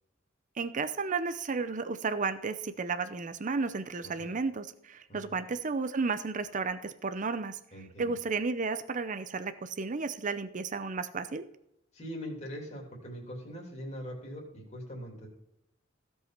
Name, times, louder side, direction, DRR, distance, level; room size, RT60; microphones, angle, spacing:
voice 1, 0.6-11.5, right 4 dB, 40° right, 11 dB, 0.6 m, -33 dB
voice 2, 7.7-8.1 11.9-15.3, equal, 35° left, -2 dB, 3.0 m, -42 dB
16.0 x 5.6 x 5.8 m, 0.82 s
head